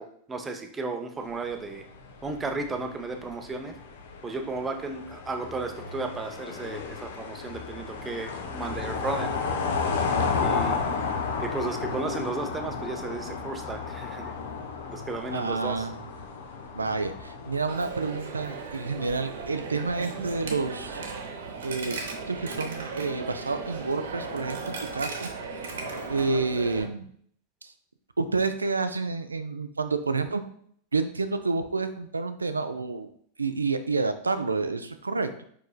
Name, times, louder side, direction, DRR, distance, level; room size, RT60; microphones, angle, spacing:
voice 1, 0.0-1.8 2.2-3.8 4.2-9.3 10.4-10.8 11.4-14.3 14.9-15.9, right 3 dB, 15° right, 5 dB, 0.6 m, -34 dB
sound 1, 1.3-17.7, left 5 dB, 60° left, 0.7 m, -33 dB
voice 2, 15.3-16.0 16.7-21.0 21.6-25.3 25.7-25.8 26.1-27.1 27.6-27.7 28.2-30.4 30.9-33.1 33.4-35.4, right 3 dB, 80° right, 10 dB, 0.3 m, -29 dB
Coin (dropping), 17.7-26.8, right 4 dB, 60° right, 0.7 m, -36 dB
4.9 x 4.7 x 2.2 m, 0.62 s
figure-of-eight pair, 90°, 0 cm